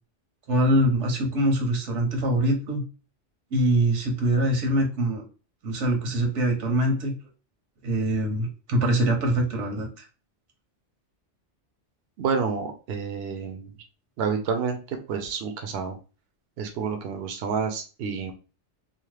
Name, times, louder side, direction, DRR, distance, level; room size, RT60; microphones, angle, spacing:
voice 1, 0.5-2.8 3.5-5.2 5.6-7.1 7.8-10.0, right 1 dB, 85° right, 2 dB, 1.2 m, -23 dB
voice 2, 12.2-13.7 14.2-16.0 16.6-18.3, right 5 dB, 65° right, 5 dB, 0.7 m, -29 dB
2.9 x 2.1 x 3.1 m, 0.34 s
omnidirectional pair, 1.2 m